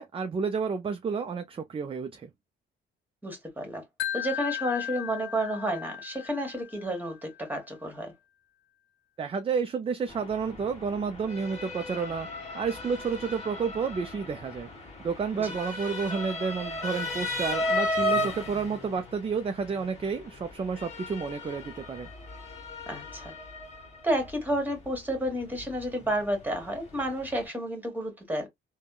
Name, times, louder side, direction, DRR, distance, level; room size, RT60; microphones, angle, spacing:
voice 1, 0.0-2.3 9.2-12.3 12.5-14.7 15.0-22.1, right 5 dB, 30° right, 0.4 m, -31 dB
voice 2, 3.2-3.8 4.1-8.1 15.3-15.5 22.9-23.3 24.0-28.5, right 1 dB, 10° right, 1.4 m, -31 dB
Wind chime, 4.0-7.1, left 12 dB, 80° left, 0.5 m, -36 dB
Motor vehicle (road) / Siren, 10.1-27.5, left 1 dB, 35° left, 1.4 m, -36 dB
3.5 x 2.2 x 2.2 m
cardioid pair, 90°, 20 cm